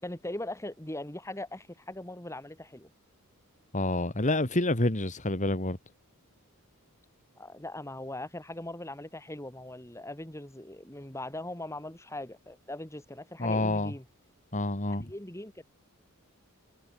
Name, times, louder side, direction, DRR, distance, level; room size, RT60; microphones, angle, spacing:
voice 1, 0.0-2.9 7.4-14.0 15.1-15.6, left 1 dB, 15° left, 3.0 m, -40 dB
voice 2, 3.7-5.8 13.4-13.9 14.5-15.1, left 2 dB, 35° left, 2.4 m, -28 dB
head